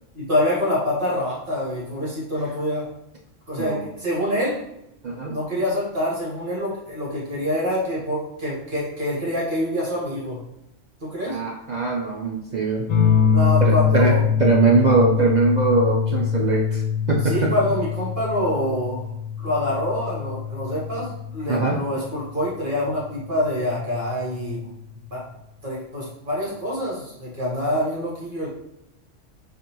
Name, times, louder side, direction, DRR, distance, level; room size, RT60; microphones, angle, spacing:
voice 1, 0.1-2.9 3.5-4.6 5.3-10.4 11.0-11.4 13.3-14.2 17.2-19.1 19.4-24.6 25.1-25.2 25.6-28.5, left 1 dB, 45° right, -6 dB, 1.3 m, -26 dB
voice 2, 3.6-3.9 5.0-5.4 11.3-12.9 13.6-16.8 17.1-17.5 21.5-21.8, right 3 dB, 65° right, -2 dB, 0.4 m, -21 dB
sound 1, 12.9-22.0 23.4-24.0, left 7 dB, 85° left, 1.0 m, -23 dB
4.9 x 2.4 x 2.9 m, 0.80 s
omnidirectional pair, 1.3 m